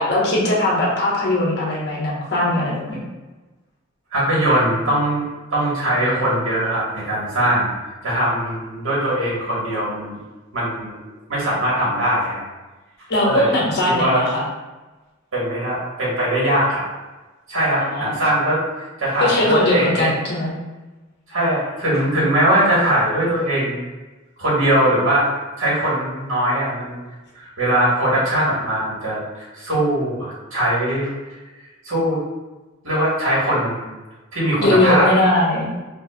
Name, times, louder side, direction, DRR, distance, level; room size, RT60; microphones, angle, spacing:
voice 1, 0.0-3.0 13.1-14.4 17.7-18.1 19.2-20.6 34.6-35.7, left 1 dB, 55° left, -4 dB, 1.1 m, -20 dB
voice 2, 4.1-7.7 8.0-10.2 10.5-11.0 11.3-12.4 13.2-13.6 13.9-14.2 15.3-16.8 17.5-18.6 19.0-20.1 21.3-23.8 24.4-25.3 25.6-27.0 27.3-31.1 31.8-32.2 32.8-33.8 34.3-35.1, right 1 dB, 80° right, -6 dB, 1.5 m, -20 dB
5.2 x 2.6 x 2.3 m, 1.2 s
head